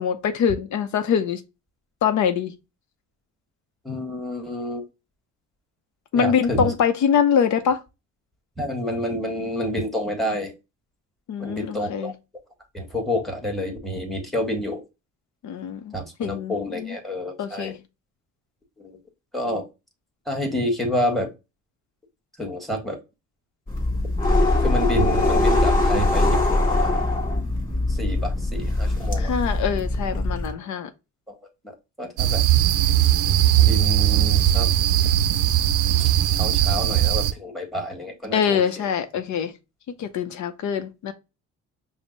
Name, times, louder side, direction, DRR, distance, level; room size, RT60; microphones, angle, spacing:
voice 1, 0.0-1.4 2.0-2.5 6.1-7.8 11.3-12.1 15.4-15.9 16.2-17.0 17.4-17.8 29.2-30.9 38.3-39.5 40.0-41.1, left 7 dB, 70° left, 0.6 m, -24 dB
voice 2, 3.8-4.8 6.1-6.7 8.6-10.5 11.4-12.1 12.7-14.8 15.9-17.7 18.8-19.0 19.3-19.6 20.3-21.3 22.4-23.0 24.6-27.0 27.9-29.3 31.3-31.4 32.0-32.4 33.6-34.7 36.0-38.9, equal, ahead, 1.4 m, -28 dB
sound 1, 23.7-30.5, left 2 dB, 30° left, 1.4 m, -22 dB
sound 2, 32.2-37.3, right 11 dB, 90° right, 0.5 m, -19 dB
5.2 x 2.1 x 3.8 m
cardioid pair, 90°, 30 cm